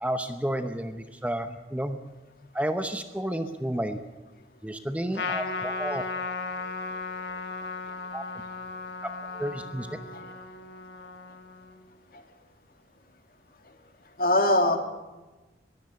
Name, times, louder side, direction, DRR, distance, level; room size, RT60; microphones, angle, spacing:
voice 1, 0.0-2.0 2.5-4.0 4.6-6.0 8.1-8.2 9.0-9.9, right 1 dB, 10° right, 7 dB, 0.8 m, -31 dB
Trumpet, 5.1-11.8, left 4 dB, 80° left, 1.4 m, -36 dB
voice 2, 5.6-6.2 6.6-7.3 7.9-8.0 9.3-9.5 10.1-10.3 12.1-12.2 14.2-14.8, left 1 dB, 50° left, 5 dB, 2.2 m, -27 dB
21.5 x 15.5 x 8.2 m, 1.2 s
head